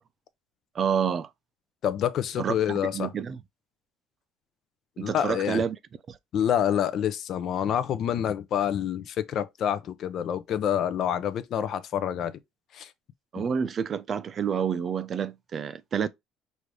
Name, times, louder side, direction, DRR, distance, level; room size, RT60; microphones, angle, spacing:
voice 1, 0.7-1.3 2.4-3.4 5.0-5.8 6.1-6.2 13.3-16.1, right 7 dB, 35° right, 0.4 m, -28 dB
voice 2, 1.8-3.1 5.0-5.6 6.3-12.4 12.7-12.9 13.4-13.5, left 9 dB, 50° left, 0.5 m, -27 dB
5.0 x 2.6 x 3.0 m
cardioid pair, 140°, 0 cm